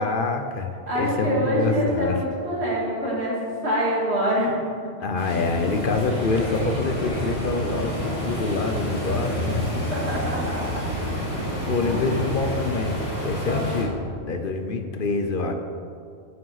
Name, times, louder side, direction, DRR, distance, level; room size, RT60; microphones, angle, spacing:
voice 1, 0.0-2.2 5.0-9.6 11.6-14.0 14.2-15.5, left 4 dB, 55° left, 6 dB, 0.9 m, -26 dB
voice 2, 0.9-3.4 3.6-4.6 4.8-4.9 7.8-8.0 9.9-10.6 11.0-11.3 11.9-12.0 13.5-13.7, equal, 80° right, -4 dB, 2.4 m, -25 dB
sound 1, 5.2-13.8, equal, 75° left, 3.2 m, -28 dB
11.5 x 5.2 x 5.7 m, 2.3 s
omnidirectional pair, 1.1 m